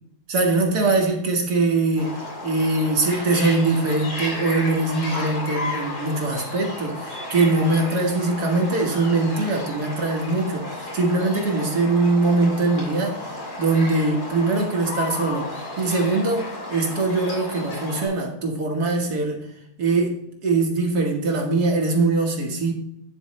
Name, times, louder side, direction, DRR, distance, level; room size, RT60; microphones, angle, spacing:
voice 1, 0.3-2.1 2.4-19.4 19.8-22.7, right 3 dB, 75° right, 1 dB, 1.9 m, -22 dB
sound 1, 2.0-18.1, left 2 dB, 75° left, 2.6 m, -33 dB
10.5 x 4.6 x 3.1 m, 0.79 s
omnidirectional pair, 1.7 m